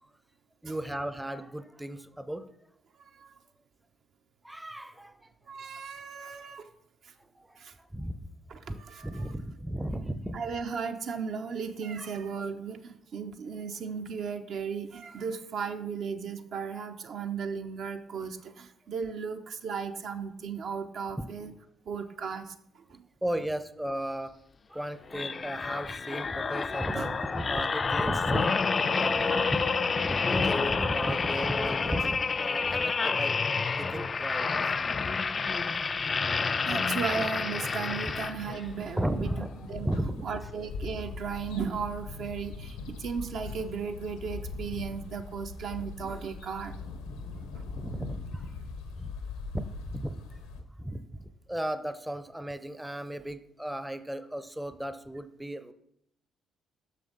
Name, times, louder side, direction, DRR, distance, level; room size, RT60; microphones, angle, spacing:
voice 1, 0.6-2.5 4.4-5.2 6.1-6.5 7.2-8.1 8.7-10.4 12.0-12.1 21.2-21.3 23.2-24.3 24.7-28.6 28.9-29.6 30.0-34.8 38.9-39.5 39.8-40.3 47.1-47.5 47.7-48.5 49.0-49.1 49.5-55.7, right 1 dB, 5° right, 11 dB, 0.6 m, -35 dB
voice 2, 3.0-3.4 5.5-6.7 7.0-7.1 7.6-7.7 8.5-9.3 10.3-21.5 21.9-23.0 27.0-27.1 28.4-28.5 36.1-36.3 36.6-39.3 39.7-39.9 40.2-46.7, right 6 dB, 60° right, 6 dB, 0.6 m, -36 dB
sound 1, 25.1-38.7 39.2-39.4, left 4 dB, 40° left, 0.4 m, -29 dB
sound 2, 37.6-50.6, left 4 dB, 75° left, 0.7 m, -41 dB
6.6 x 6.3 x 3.9 m, 0.73 s
figure-of-eight pair, 45°, 0 cm